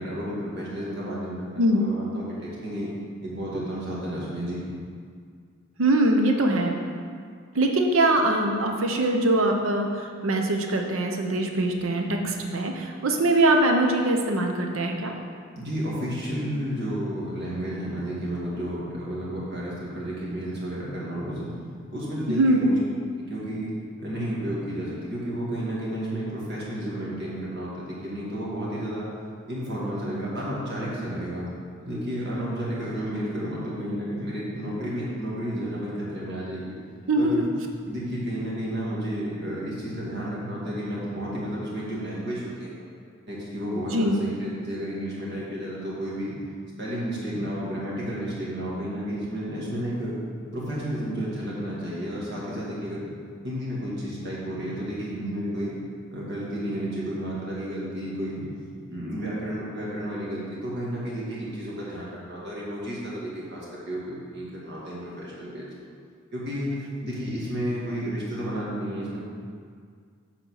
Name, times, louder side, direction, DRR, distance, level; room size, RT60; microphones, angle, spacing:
voice 1, 0.0-2.9 3.2-4.6 15.5-21.5 21.9-22.8 23.2-23.7 24.0-29.1 29.5-31.5 31.8-36.7 37.1-37.5 37.9-42.8 43.3-46.4 46.8-50.1 50.5-53.1 53.4-55.8 56.1-58.5 58.9-63.6 63.9-65.7 66.3-66.7 67.0-69.2, equal, 55° right, -6 dB, 2.3 m, -32 dB
voice 2, 5.8-6.8 7.5-15.1 22.3-22.7 37.1-37.3 43.9-44.2, right 1 dB, 80° right, 3 dB, 0.7 m, -22 dB
8.0 x 4.3 x 6.3 m, 2.1 s
head